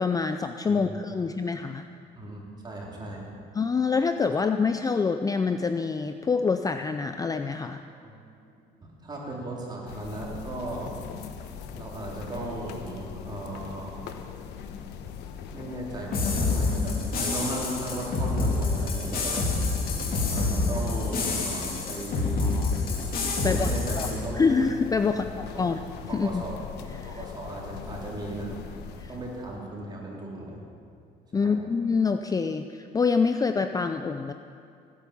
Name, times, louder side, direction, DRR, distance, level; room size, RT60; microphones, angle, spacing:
voice 1, 0.0-1.9 3.5-7.8 22.4-22.7 23.4-23.7 24.0-24.1 24.3-25.8 26.1-26.4 27.0-27.2 29.0-29.1 31.3-34.3, left 5 dB, 20° left, 8 dB, 0.5 m, -26 dB
voice 2, 2.2-3.2 7.9-8.2 9.0-11.0 11.7-14.0 15.5-19.4 20.3-22.7 23.3-24.6 25.0-25.3 25.5-25.8 26.1-26.6 27.1-28.6 29.1-30.6 31.4-31.6, right 2 dB, 25° right, -3 dB, 4.1 m, -36 dB
sound 1, 9.9-29.6, left 7 dB, 85° left, 1.1 m, -41 dB
sound 2, 16.1-24.1, left 3 dB, 60° left, 2.9 m, -27 dB
17.0 x 10.5 x 7.2 m, 2.4 s
cardioid pair, 110°, 17 cm